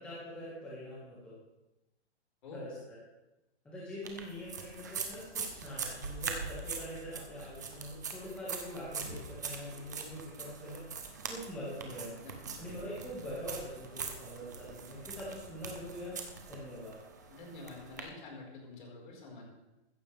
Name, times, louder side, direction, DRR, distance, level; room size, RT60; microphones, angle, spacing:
voice 1, 0.0-1.3 2.5-3.0 3.6-10.8 11.3-12.2 12.6-16.2 16.5-17.0, equal, 5° left, -9 dB, 1.7 m, -43 dB
sound 1, 4.0-18.0, right 5 dB, 15° right, 0.6 m, -43 dB
voice 2, 17.3-19.5, left 3 dB, 45° left, -2 dB, 5.0 m, -47 dB
14.5 x 13.5 x 3.5 m, 0.99 s
hypercardioid pair, 175°, 34 cm